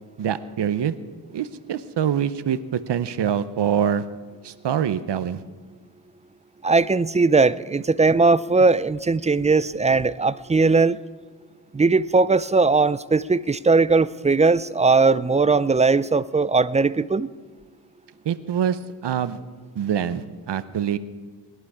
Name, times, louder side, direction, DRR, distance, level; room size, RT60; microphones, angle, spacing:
voice 1, 0.2-0.9 1.3-4.0 4.4-5.4 18.2-19.4 19.8-21.0, right 8 dB, 70° right, 13 dB, 0.9 m, -25 dB
voice 2, 6.6-11.0 11.7-17.3, right 4 dB, 20° right, 16 dB, 0.3 m, -19 dB
20.0 x 11.5 x 4.8 m, 1.5 s
wide cardioid pair, 105°, 43 cm